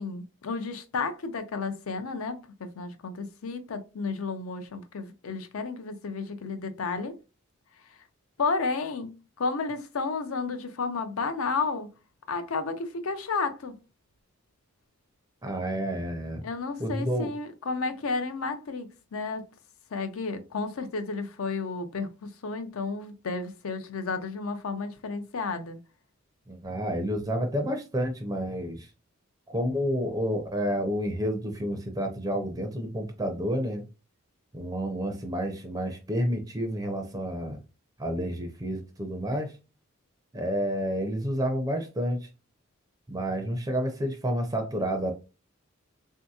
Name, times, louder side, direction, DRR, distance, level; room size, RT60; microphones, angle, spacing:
voice 1, 0.0-7.1 8.4-11.9 12.3-13.8 16.4-19.4 19.9-25.8, left 4 dB, 80° left, 0.5 m, -32 dB
voice 2, 15.4-16.4 16.8-17.3 26.5-28.9 29.5-33.9 34.5-37.6 38.0-39.5 40.3-42.3 43.1-45.1, equal, 15° right, 0.4 m, -30 dB
3.5 x 2.7 x 2.3 m
head